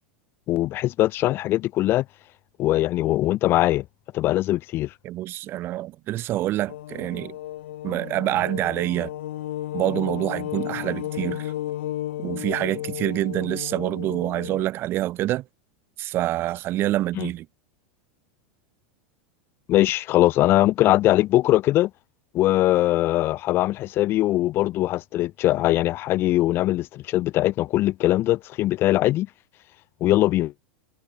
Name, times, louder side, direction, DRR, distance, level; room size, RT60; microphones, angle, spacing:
voice 1, 0.5-2.0 2.6-3.8 4.1-4.9 17.1-17.3 19.7-21.9 22.3-29.3 30.0-30.5, left 15 dB, 40° left, 0.7 m, -21 dB
voice 2, 5.0-7.3 7.8-9.1 9.7-11.5 12.2-15.4 16.0-17.5, right 15 dB, 40° right, 0.9 m, -26 dB
sound 1, 6.7-14.6, left 13 dB, 85° left, 0.4 m, -33 dB
hypercardioid pair, 115°, 6 cm